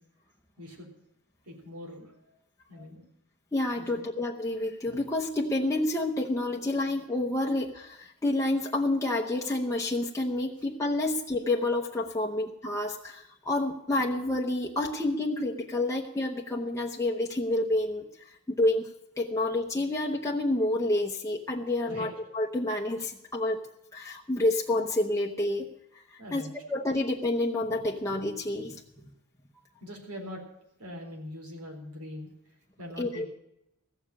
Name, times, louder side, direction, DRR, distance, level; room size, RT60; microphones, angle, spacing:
voice 1, 0.6-0.9 1.5-2.2 2.7-3.0 3.8-4.1 21.8-22.1 26.2-26.8 29.0-29.1 29.8-30.4 30.8-32.3 32.8-33.3, left 1 dB, 85° right, 2 dB, 3.9 m, -42 dB
voice 2, 3.5-18.9 19.2-23.6 23.9-25.7 25.9-28.8 33.0-33.3, left 2 dB, 15° left, -1 dB, 0.8 m, -29 dB
15.0 x 7.3 x 8.5 m, 0.82 s
head